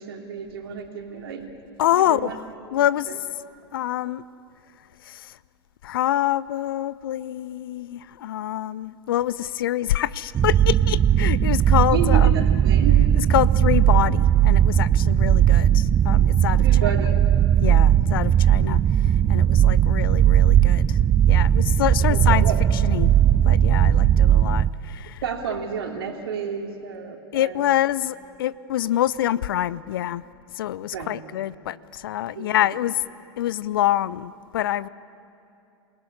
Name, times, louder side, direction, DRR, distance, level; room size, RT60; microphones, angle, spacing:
voice 1, 0.0-1.4 1.9-2.4 3.1-3.2 11.9-13.0 16.6-17.2 22.1-22.6 25.2-27.7 30.9-31.1 32.3-32.7, right 7 dB, 60° right, 3 dB, 3.0 m, -31 dB
voice 2, 1.8-2.4 2.7-3.1 3.7-4.2 5.1-5.3 5.8-12.3 13.3-16.6 17.6-21.0 21.3-22.4 22.8-23.1 23.4-25.2 27.3-30.2 30.6-33.0 33.4-34.9, left 12 dB, 55° left, 20 dB, 0.5 m, -26 dB
sound 1, 10.3-24.7, right 10 dB, 20° right, 0.5 m, -18 dB
28.0 x 19.0 x 9.8 m, 2.7 s
figure-of-eight pair, 90°, 14 cm